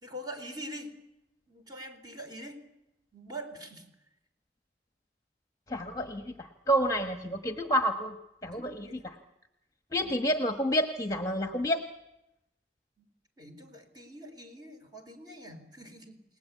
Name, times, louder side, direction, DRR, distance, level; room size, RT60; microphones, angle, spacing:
voice 1, 0.0-0.9 1.5-2.6 3.1-3.9 8.5-9.1 13.0-13.1 13.4-16.2, right 1 dB, 25° right, 5 dB, 4.0 m, -44 dB
voice 2, 5.7-8.2 8.4-9.1 9.9-11.8, equal, 20° left, 5 dB, 1.4 m, -29 dB
29.0 x 19.5 x 8.4 m, 0.91 s
head